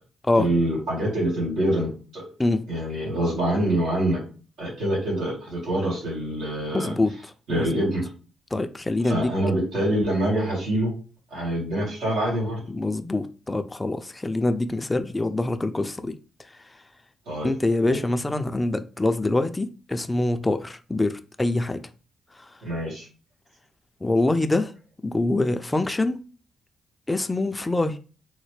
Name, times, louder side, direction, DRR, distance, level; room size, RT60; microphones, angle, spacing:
voice 1, 0.3-2.3 2.7-4.2 4.6-7.0 7.5-8.0 9.0-10.9 11.3-12.6 17.3-17.5 17.9-18.0 22.6-23.1, right 1 dB, 80° right, 1.9 m, -25 dB
voice 2, 6.7-7.1 7.5-7.9 8.5-9.3 12.7-16.2 17.4-21.8 24.0-24.7 25.0-26.2 27.1-28.0, left 2 dB, 20° left, 0.4 m, -24 dB
3.9 x 2.1 x 3.2 m
supercardioid pair, 60°, 0 cm